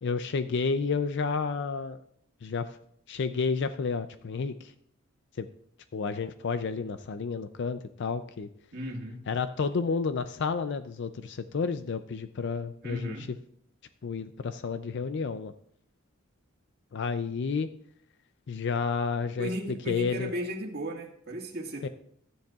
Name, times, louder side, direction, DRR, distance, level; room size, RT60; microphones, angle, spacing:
voice 1, 0.0-2.0 2.4-2.7 3.1-4.7 5.4-5.5 5.9-8.5 9.3-13.4 14.0-15.5 16.9-17.7 18.5-19.5 19.9-20.3 21.8-21.9, left 5 dB, 60° left, 11 dB, 0.4 m, -31 dB
voice 2, 8.7-9.2 12.8-13.3 19.4-21.9, equal, 50° right, 1 dB, 1.8 m, -35 dB
14.0 x 10.0 x 2.4 m, 0.67 s
head